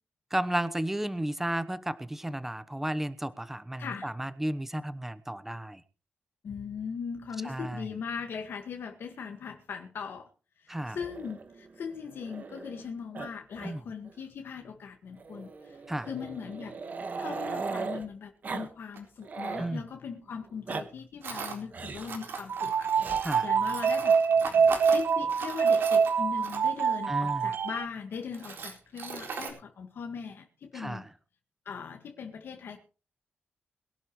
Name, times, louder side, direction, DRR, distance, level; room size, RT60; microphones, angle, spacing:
voice 1, 0.3-5.8 7.4-7.8 10.7-11.0 13.6-13.8 15.9-16.1 19.6-19.8 23.2-23.5 27.1-27.5 30.7-31.1, right 1 dB, 10° right, 14 dB, 1.0 m, -33 dB
voice 2, 3.8-4.1 6.4-10.3 10.6-16.8 17.2-22.9 23.4-24.2 24.9-31.1 31.7-32.9, left 6 dB, 75° left, 3 dB, 1.8 m, -39 dB
Growling, 11.0-12.9 13.1-13.3 13.6-13.7 14.1-14.2 15.2-18.0 18.4-18.7 19.0-19.7 20.4-20.8 21.7-22.2 22.9-23.2 24.4-25.0, right 4 dB, 50° right, 1.6 m, -39 dB
Tools, 18.9-19.0 21.2-21.6 22.0-26.9 27.6-27.7 28.1-29.5, right 5 dB, 80° right, 4.1 m, -39 dB
sound 1, 22.5-27.9, right 6 dB, 65° right, 0.6 m, -25 dB
22.0 x 11.5 x 3.2 m, 0.35 s
wide cardioid pair, 105°, 4 cm